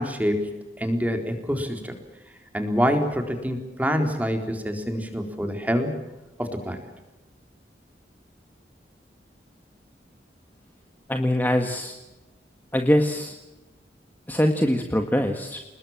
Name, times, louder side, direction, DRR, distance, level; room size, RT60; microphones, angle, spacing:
voice 1, 0.0-2.0 2.5-5.9 6.4-6.8, equal, 10° right, 5 dB, 3.9 m, -26 dB
voice 2, 11.1-12.0 12.7-13.3 14.3-15.6, equal, 10° left, 5 dB, 1.6 m, -23 dB
30.0 x 20.5 x 7.4 m, 1.1 s
head